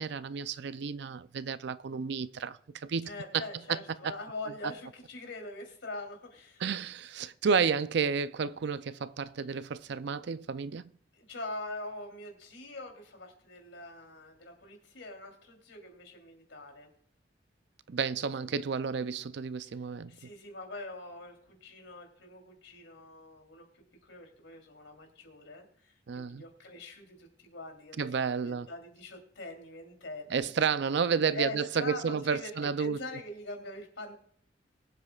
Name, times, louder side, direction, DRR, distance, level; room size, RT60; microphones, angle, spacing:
voice 1, 0.0-3.8 4.0-4.1 6.6-10.8 17.9-20.2 26.1-26.4 28.0-28.7 30.3-33.0, right 6 dB, 65° right, 0.5 m, -31 dB
voice 2, 3.0-6.6 11.1-16.9 18.4-18.7 19.6-30.5 31.3-34.1, left 2 dB, 90° left, 3.2 m, -44 dB
23.5 x 8.1 x 2.4 m
head